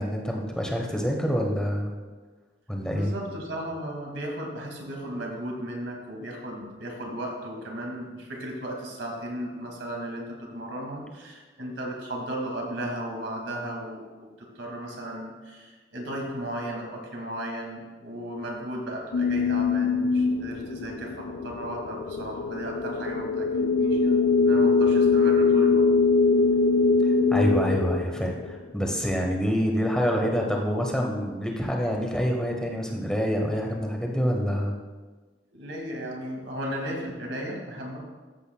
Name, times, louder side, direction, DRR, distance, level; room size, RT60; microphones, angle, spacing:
voice 1, 0.0-1.9 2.7-3.1 27.3-34.7, equal, 5° left, 0 dB, 1.0 m, -26 dB
voice 2, 2.9-25.9 35.5-38.0, right 1 dB, 80° right, 0 dB, 2.1 m, -35 dB
sound 1, 19.1-28.9, left 4 dB, 75° left, 0.4 m, -23 dB
14.0 x 7.9 x 2.2 m, 1.3 s
head